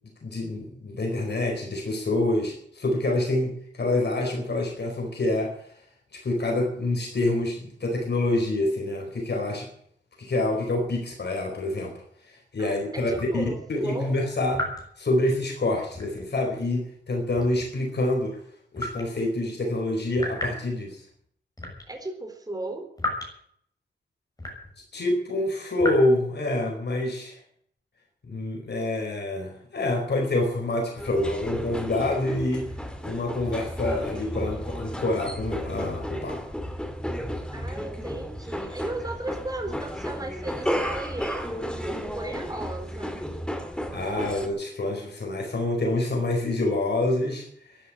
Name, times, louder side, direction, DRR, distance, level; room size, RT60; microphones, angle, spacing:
voice 1, 0.2-5.5 6.1-9.7 10.2-11.9 12.2-13.4 13.7-14.7 15.0-18.4 18.7-21.0 24.9-27.4 28.2-32.7 33.0-36.4 43.9-47.8, left 2 dB, 65° left, 2 dB, 4.5 m, -27 dB
voice 2, 12.6-14.2 21.9-22.9 37.5-43.1, right 2 dB, 20° right, 3 dB, 4.0 m, -36 dB
sound 1, 13.1-13.4 14.5-14.9 15.9-16.3 17.3-17.7 18.8-19.1 20.2-20.6 21.6-21.9 23.0-23.3 24.4-24.8 25.8-26.0, left 1 dB, 20° left, 6.8 m, -33 dB
sound 2, 31.0-44.5, equal, 5° left, 2.5 m, -33 dB
13.0 x 11.0 x 10.0 m, 0.66 s
wide cardioid pair, 130°, 19 cm